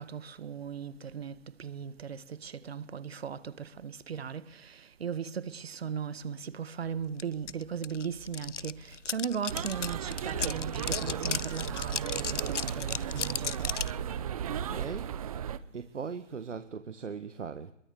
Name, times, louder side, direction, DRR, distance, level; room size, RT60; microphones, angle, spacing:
voice 1, 0.0-13.8, right 7 dB, 55° right, 1.9 m, -38 dB
sound 1, 7.2-7.3 7.5-14.0, left 7 dB, 75° left, 0.9 m, -35 dB
sound 2, 9.5-15.6, right 9 dB, 30° right, 1.2 m, -35 dB
voice 2, 14.5-15.2 15.7-17.7, right 6 dB, 75° right, 1.9 m, -39 dB
25.5 x 22.0 x 7.2 m
hypercardioid pair, 155°, 36 cm